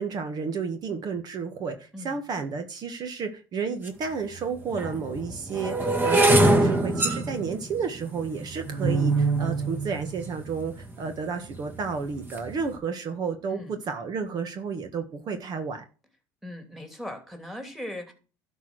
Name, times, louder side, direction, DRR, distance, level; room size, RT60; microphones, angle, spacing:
voice 1, 0.0-15.8, right 5 dB, 45° right, 7 dB, 1.7 m, -32 dB
sound 1, 3.9-4.0 4.7-10.9 11.5-11.9 12.1-12.5, right 2 dB, 20° right, 1.9 m, -24 dB
voice 2, 16.4-18.1, left 1 dB, ahead, 5 dB, 3.0 m, -38 dB
12.0 x 4.7 x 6.4 m, 0.34 s
supercardioid pair, 110°, 10 cm